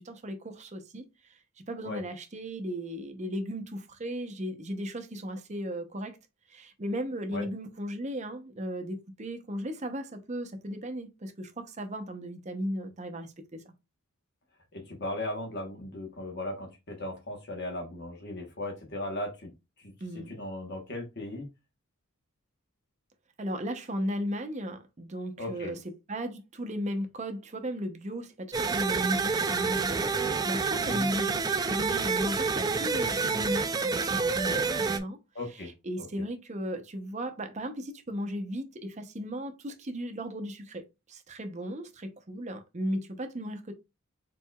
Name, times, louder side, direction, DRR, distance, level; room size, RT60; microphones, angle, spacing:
voice 1, 0.0-6.2 6.5-13.6 20.0-20.3 23.4-25.8 26.1-35.2 35.5-43.7, equal, 35° right, 0.7 m, -36 dB
voice 2, 14.7-19.5 19.8-21.5 25.4-25.7 30.7-31.0 35.3-35.7, left 1 dB, 50° left, 1.2 m, -37 dB
sound 1, 28.5-35.0, right 4 dB, 20° right, 0.3 m, -28 dB
4.6 x 4.0 x 2.3 m
head